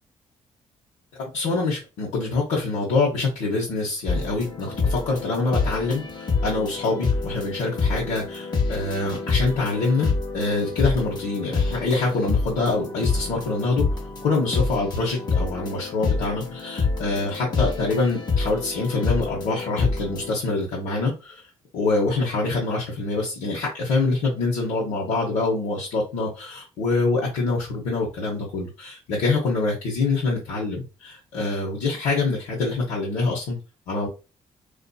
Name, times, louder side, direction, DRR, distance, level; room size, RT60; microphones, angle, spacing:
voice 1, 1.3-13.9 14.2-21.4 21.7-33.6 33.9-34.1, left 3 dB, 90° left, -5 dB, 0.9 m, -25 dB
sound 1, 4.1-20.3, left 4 dB, 35° left, 0.8 m, -27 dB
2.6 x 2.4 x 2.2 m, 0.30 s
cardioid pair, 75°, 12 cm